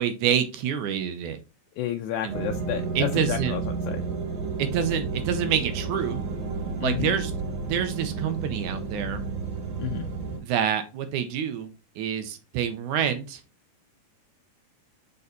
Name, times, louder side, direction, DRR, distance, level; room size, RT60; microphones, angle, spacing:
voice 1, 0.0-1.4 2.2-2.3 3.0-3.6 4.6-6.2 6.8-7.3 7.7-9.2 10.4-11.7 12.0-13.4, right 8 dB, 75° right, 9 dB, 2.2 m, -27 dB
voice 2, 1.8-4.0 6.8-7.2 9.8-10.1, left 11 dB, 80° left, 5 dB, 1.8 m, -31 dB
sound 1, 2.3-10.4, right 4 dB, 45° right, 2.0 m, -31 dB
6.7 x 4.1 x 4.0 m, 0.30 s
omnidirectional pair, 3.7 m